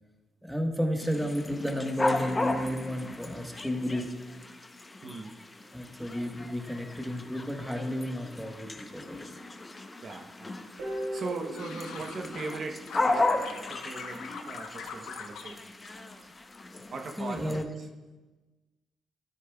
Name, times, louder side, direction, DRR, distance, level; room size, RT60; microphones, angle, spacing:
voice 1, 0.4-4.1 5.7-9.2 17.2-17.7, equal, ahead, 3 dB, 1.1 m, -32 dB
sound 1, 1.0-17.6, left 2 dB, 20° left, 0.7 m, -35 dB
voice 2, 5.0-5.5 10.0-10.6 11.1-15.7 16.9-17.9, right 3 dB, 50° right, 3 dB, 0.8 m, -40 dB
Guitar, 10.8-13.7, right 1 dB, 90° right, 2.8 m, -39 dB
sound 2, 11.1-12.6 12.9-15.6 15.8-16.6 16.9-17.4, left 6 dB, 75° left, 0.9 m, -43 dB
13.0 x 8.9 x 2.3 m, 1.2 s
cardioid pair, 90°, 0 cm